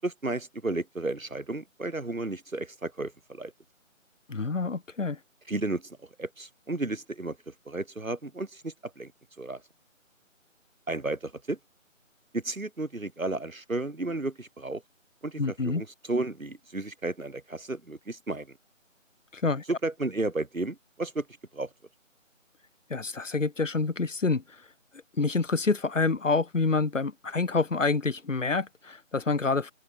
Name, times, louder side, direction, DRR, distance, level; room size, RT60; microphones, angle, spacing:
voice 1, 0.0-3.5 5.5-9.1 9.4-9.6 10.9-11.6 12.3-14.8 15.2-18.5 19.7-21.2 21.5-21.7, right 2 dB, 90° right, 6.8 m, -33 dB
voice 2, 4.3-5.2 15.4-15.8 19.3-19.6 22.9-24.4 25.2-29.7, left 4 dB, 70° left, 2.3 m, -27 dB
open air
figure-of-eight pair, 165°, 39 cm